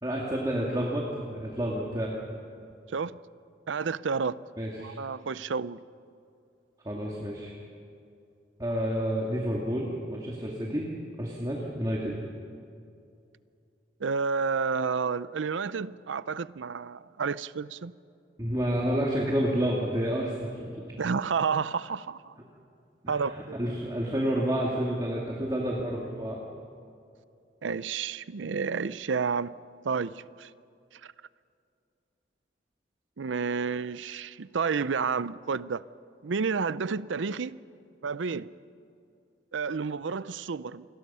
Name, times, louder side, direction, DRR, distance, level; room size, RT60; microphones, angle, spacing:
voice 1, 0.0-2.2 4.6-4.9 6.8-7.5 8.6-10.9 11.2-12.2 18.4-20.7 23.0-26.4, equal, 20° right, 2.2 m, -29 dB
voice 2, 3.7-4.4 4.8-5.8 14.0-17.9 21.0-22.3 23.1-23.6 27.6-29.5 29.8-30.5 31.0-31.1 33.2-35.8 36.2-37.6 38.0-38.5 39.5-40.8, right 5 dB, 85° right, 0.5 m, -30 dB
28.5 x 21.5 x 5.6 m
head